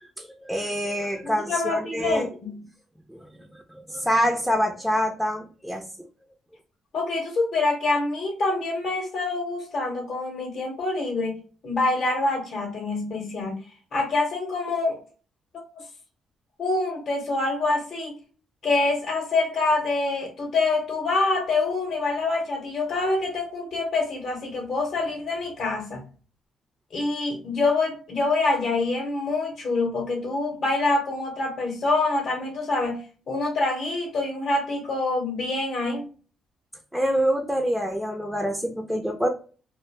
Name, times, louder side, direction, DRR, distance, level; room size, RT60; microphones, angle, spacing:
voice 1, 0.2-2.3 3.1-3.3 3.9-5.8 36.9-39.3, equal, ahead, 2 dB, 0.4 m, -26 dB
voice 2, 1.2-2.6 6.9-13.6 13.9-15.0 15.7-15.8 16.6-18.2 18.6-26.0 26.9-36.1, left 3 dB, 55° left, 1 dB, 0.7 m, -26 dB
2.4 x 2.0 x 3.1 m, 0.38 s
cardioid pair, 90°, 0 cm